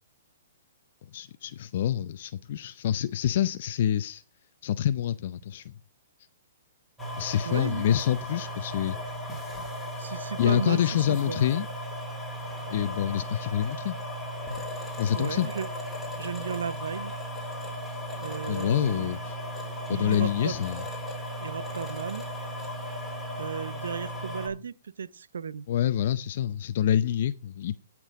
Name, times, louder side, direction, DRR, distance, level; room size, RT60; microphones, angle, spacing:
voice 1, 1.1-4.2 4.6-5.7 7.2-9.0 10.4-11.7 12.7-14.0 15.0-15.5 18.5-19.2 19.9-20.8 25.7-27.8, left 10 dB, 55° left, 0.5 m, -27 dB
sound 1, 7.0-24.5, equal, ahead, 2.9 m, -36 dB
voice 2, 7.5-8.0 10.0-10.8 11.1-11.4 15.1-15.7 16.2-17.1 18.2-19.1 19.9-20.6 21.4-22.2 23.4-25.7, right 7 dB, 85° right, 0.6 m, -34 dB
17.0 x 6.1 x 3.7 m
hypercardioid pair, 145°, 0 cm